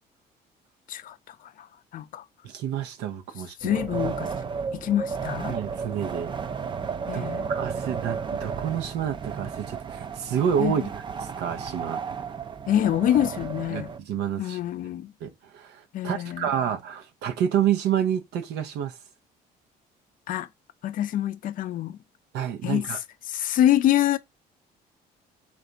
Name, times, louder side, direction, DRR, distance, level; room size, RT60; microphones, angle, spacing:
voice 1, 0.9-1.7 1.9-2.2 3.6-4.3 4.7-5.6 7.1-7.5 10.6-10.9 12.7-13.9 14.4-15.1 15.9-16.5 20.3-20.5 20.8-22.0 22.6-23.0 23.3-24.2, left 11 dB, 55° left, 0.4 m, -26 dB
voice 2, 2.4-3.7 5.5-6.3 7.1-10.8 11.2-12.0 13.7-14.6 15.2-19.0 22.3-23.0, right 9 dB, 80° right, 0.7 m, -29 dB
Wind, 3.6-14.0, right 6 dB, 30° right, 0.4 m, -33 dB
3.3 x 2.5 x 3.9 m
cardioid pair, 110°, 17 cm